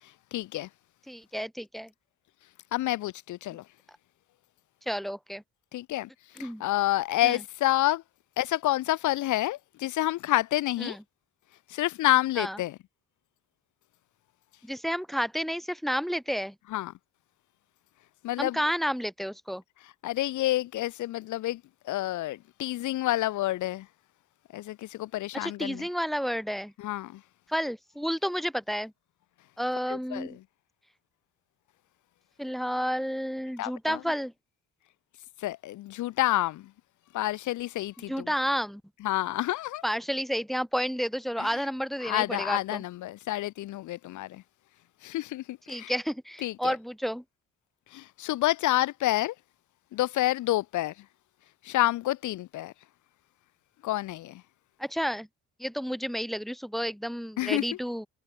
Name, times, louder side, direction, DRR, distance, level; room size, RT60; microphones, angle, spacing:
voice 1, 0.3-0.7 2.7-3.7 5.7-6.1 6.4-8.0 8.4-11.0 11.7-12.8 16.7-16.9 18.2-18.6 20.0-23.9 24.5-25.8 26.8-27.2 29.9-30.3 33.6-34.0 35.4-36.7 37.1-38.3 39.0-39.8 41.4-41.6 42.0-44.4 45.0-45.9 46.4-46.7 47.9-49.3 49.9-51.0 51.6-52.7 53.8-54.4 57.4-57.7, left 15 dB, 75° left, 0.8 m, -29 dB
voice 2, 1.1-1.9 4.9-5.4 6.4-6.6 7.2-7.4 10.8-11.0 12.4-12.6 14.6-16.5 18.4-19.6 25.3-26.7 27.5-28.9 29.6-30.4 32.4-34.3 38.1-38.8 39.8-42.8 45.7-47.2 54.8-55.3 55.6-58.1, equal, ahead, 0.8 m, -31 dB
cardioid pair, 90°, 30 cm